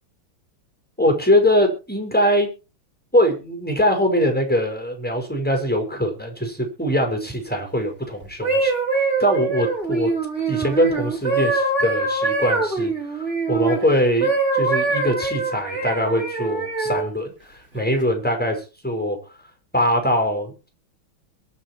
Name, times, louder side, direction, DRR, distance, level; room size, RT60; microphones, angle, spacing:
voice 1, 1.0-2.5 3.1-8.7 9.2-10.1 10.5-19.2 19.7-20.7, equal, 5° left, 4 dB, 5.4 m, -22 dB
sound 1, 8.2-13.8 14.2-17.1 17.7-18.0, right 3 dB, 30° right, 6.2 m, -23 dB
22.5 x 7.8 x 4.7 m, 0.33 s
omnidirectional pair, 2.3 m